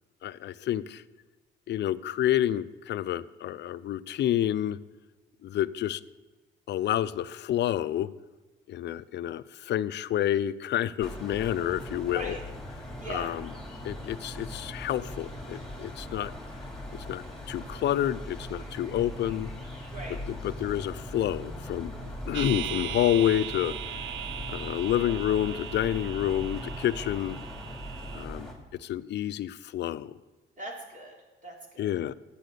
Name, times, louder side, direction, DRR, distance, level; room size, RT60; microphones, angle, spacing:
voice 1, 0.2-1.0 1.7-4.8 5.4-6.0 6.7-8.1 8.7-12.4 13.1-13.5 13.8-16.3 16.9-19.5 20.4-23.7 24.5-27.4 28.1-30.2 31.8-32.1, left 11 dB, 60° left, 16 dB, 0.5 m, -29 dB
sound 1, 11.0-28.5, equal, 5° left, 2.8 m, -40 dB
voice 2, 12.1-12.4 13.0-13.3 19.9-20.2 30.6-31.1 31.4-31.9, right 1 dB, 40° right, -1 dB, 3.1 m, -40 dB
sound 2, 22.3-28.3, right 12 dB, 70° right, 0.5 m, -38 dB
10.0 x 7.6 x 6.7 m, 1.2 s
cardioid pair, 90°, 20 cm